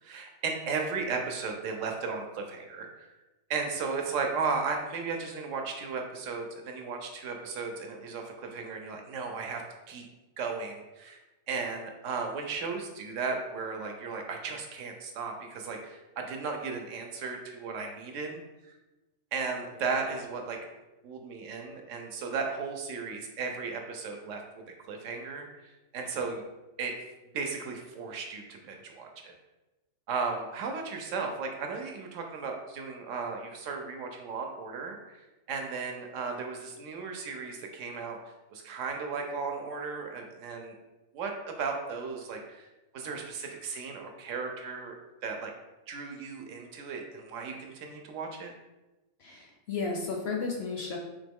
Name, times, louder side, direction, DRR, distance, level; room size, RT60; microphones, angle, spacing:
voice 1, 0.0-3.1 3.5-9.6 9.9-10.1 10.4-11.2 11.5-18.4 19.3-20.6 21.0-24.4 24.9-26.4 26.8-26.9 27.3-29.3 30.1-35.2 35.5-38.2 38.5-40.7 41.1-42.7 42.9-44.9 45.2-45.5 45.9-48.5, right 4 dB, 70° right, 3 dB, 0.9 m, -35 dB
voice 2, 49.2-51.0, left 4 dB, 65° left, 1 dB, 0.7 m, -33 dB
3.6 x 2.9 x 3.5 m, 1.1 s
omnidirectional pair, 1.4 m